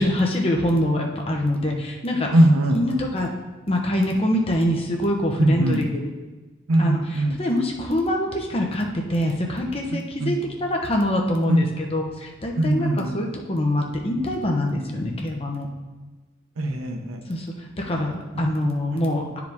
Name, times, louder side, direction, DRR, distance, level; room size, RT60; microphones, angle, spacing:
voice 1, 0.0-2.3 2.7-3.3 3.7-6.1 6.8-15.7 17.3-19.4, left 1 dB, 30° left, 0 dB, 0.9 m, -24 dB
voice 2, 2.3-2.8 5.4-5.8 6.7-7.4 10.2-10.4 11.5-11.6 12.6-13.2 16.6-17.2, right 1 dB, 90° right, 3 dB, 0.8 m, -20 dB
9.2 x 5.0 x 3.5 m, 1.2 s
head